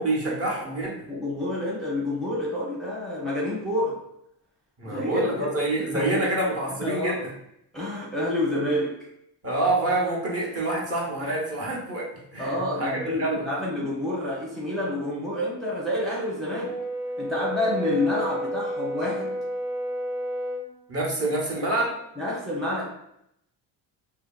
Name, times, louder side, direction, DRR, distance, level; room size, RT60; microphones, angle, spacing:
voice 1, 0.0-1.1 4.8-7.3 9.4-12.1 12.3-13.4 20.9-21.9, right 2 dB, 35° right, -3 dB, 0.9 m, -27 dB
voice 2, 1.1-4.0 4.8-6.2 6.8-7.2 7.7-8.9 11.2-11.3 12.4-16.7 17.2-19.4 22.2-22.8, left 1 dB, ahead, -6 dB, 0.6 m, -28 dB
Brass instrument, 16.4-20.7, equal, 60° right, 1.2 m, -31 dB
2.7 x 2.7 x 2.3 m, 0.77 s
cardioid pair, 105°, 43 cm